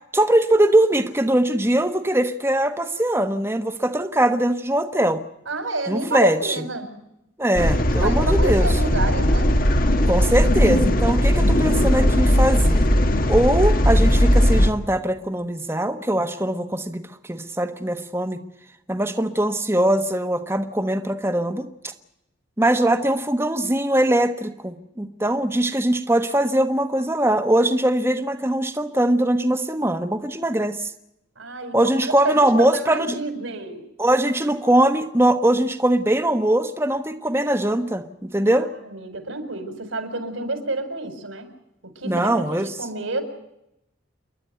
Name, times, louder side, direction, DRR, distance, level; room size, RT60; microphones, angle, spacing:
voice 1, 0.1-5.2 5.9-6.6 7.4-8.8 10.0-12.9 13.3-18.4 18.9-21.9 22.6-30.9 31.7-33.2 34.0-38.7 42.0-42.7, right 1 dB, 10° right, 7 dB, 1.2 m, -21 dB
voice 2, 5.5-6.9 7.8-9.5 31.3-33.8 38.4-41.5 41.8-43.2, right 2 dB, 85° right, 7 dB, 4.6 m, -29 dB
sound 1, 7.6-14.7, equal, 45° left, 1.5 m, -18 dB
29.0 x 11.5 x 9.3 m, 0.82 s
head